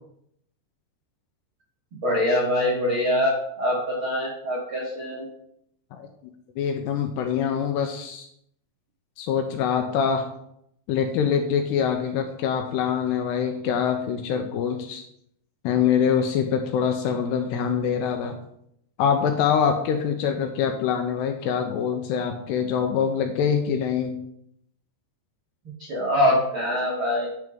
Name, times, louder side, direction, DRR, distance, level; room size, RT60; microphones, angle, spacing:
voice 1, 2.0-5.2 25.8-27.3, left 1 dB, 80° right, -4 dB, 1.1 m, -24 dB
voice 2, 6.6-8.3 9.2-10.3 10.9-15.0 15.6-18.4 19.0-24.2, left 7 dB, 85° left, 5 dB, 2.5 m, -24 dB
10.0 x 6.2 x 3.6 m, 0.74 s
omnidirectional pair, 5.3 m